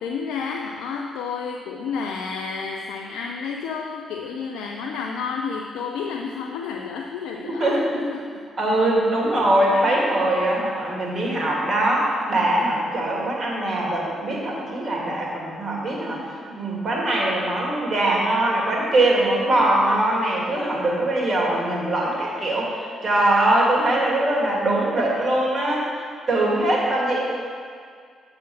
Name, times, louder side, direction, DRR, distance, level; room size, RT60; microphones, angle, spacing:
voice 1, 0.0-7.8 8.1-8.4, left 5 dB, 75° left, 2 dB, 0.4 m, -30 dB
voice 2, 7.4-8.0 8.6-27.2, right 1 dB, 50° right, -3 dB, 2.3 m, -22 dB
7.1 x 4.9 x 7.0 m, 2.1 s
hypercardioid pair, 45°, 0 cm